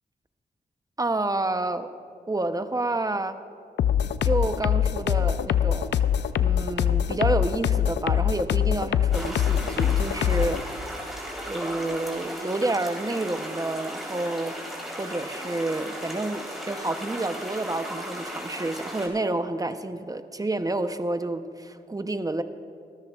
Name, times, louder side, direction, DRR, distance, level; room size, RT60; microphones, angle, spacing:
voice 1, 1.0-1.9 2.3-3.4 4.2-6.0 6.4-10.6 11.5-14.6 15.0-22.4, right 2 dB, 20° right, 9 dB, 0.7 m, -29 dB
sound 1, 3.8-10.6, left 9 dB, 85° left, 0.4 m, -23 dB
sound 2, 9.1-19.1, equal, ahead, 3.6 m, -36 dB
23.5 x 14.0 x 2.4 m, 2.3 s
cardioid pair, 65°, 18 cm